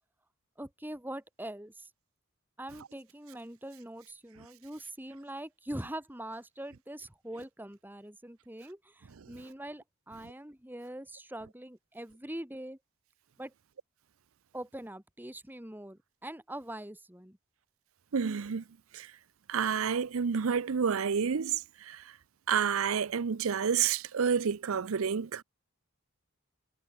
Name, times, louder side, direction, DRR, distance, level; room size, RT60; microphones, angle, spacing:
voice 1, 0.6-1.9 2.6-12.8 13.4-13.5 14.5-17.4, right 1 dB, 10° right, 2.0 m, -43 dB
voice 2, 18.1-18.6 18.9-19.1 19.5-22.2 22.5-25.4, right 6 dB, 70° right, 0.5 m, -29 dB
head